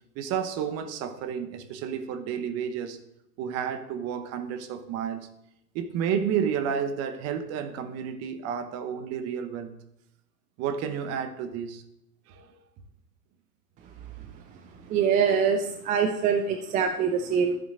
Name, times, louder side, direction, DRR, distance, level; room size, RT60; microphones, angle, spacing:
voice 1, 0.1-3.0 3.4-5.3 5.7-9.8 10.6-11.8 12.3-12.5, right 8 dB, 35° right, 1.1 m, -31 dB
voice 2, 14.9-17.6, right 6 dB, 20° right, 0.5 m, -24 dB
13.5 x 7.6 x 2.6 m
figure-of-eight pair, 100°, 45 cm